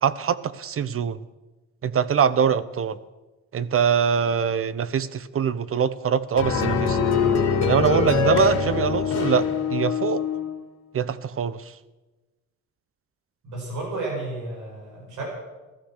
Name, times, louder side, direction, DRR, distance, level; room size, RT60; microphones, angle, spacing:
voice 1, 0.0-1.2 1.8-3.0 3.5-7.0 7.6-10.2 10.9-11.6, right 7 dB, 45° right, 16 dB, 0.9 m, -23 dB
sound 1, 6.4-10.5, left 6 dB, 55° left, 2.8 m, -23 dB
voice 2, 13.4-15.2, right 2 dB, 75° right, -2 dB, 7.3 m, -32 dB
16.0 x 14.0 x 6.5 m, 1.1 s
cardioid pair, 90°, 30 cm